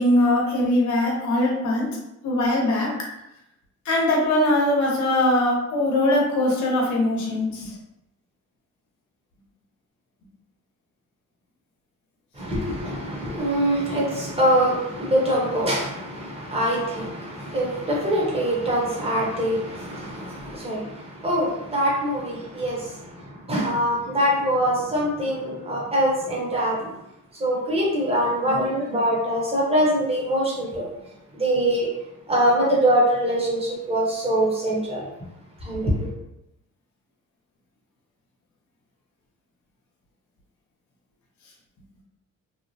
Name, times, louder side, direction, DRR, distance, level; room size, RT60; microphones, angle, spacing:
voice 1, 0.0-1.9 2.2-2.9 3.9-7.7, left 1 dB, 65° left, -2 dB, 0.9 m, -21 dB
voice 2, 12.3-26.9 27.4-30.9 31.3-31.9 32.3-35.1 35.6-36.1, equal, 20° right, -4 dB, 0.9 m, -23 dB
2.9 x 2.0 x 2.7 m, 0.86 s
cardioid pair, 120°, 31 cm